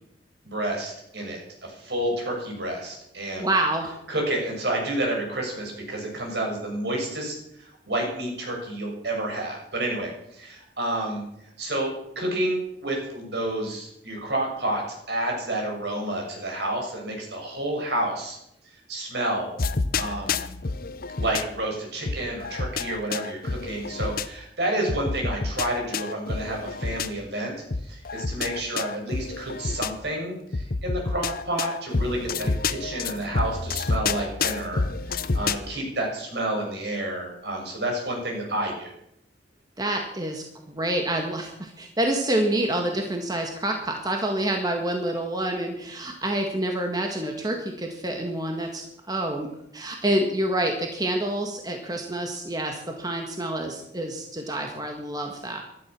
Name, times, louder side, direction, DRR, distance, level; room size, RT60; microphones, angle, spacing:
voice 1, 0.4-3.5 4.1-11.2 11.6-18.4 18.9-19.5 20.0-20.4 21.2-27.5 27.8-38.9, right 1 dB, 70° right, 1 dB, 6.6 m, -30 dB
voice 2, 3.4-4.0 39.8-49.5 49.7-55.6, right 1 dB, 20° right, 2 dB, 1.8 m, -27 dB
sound 1, 19.6-21.4 22.1-24.3 24.9-27.1 27.7-29.9 30.5-35.6, left 4 dB, 55° left, 0.8 m, -29 dB
15.5 x 12.5 x 6.2 m, 0.78 s
head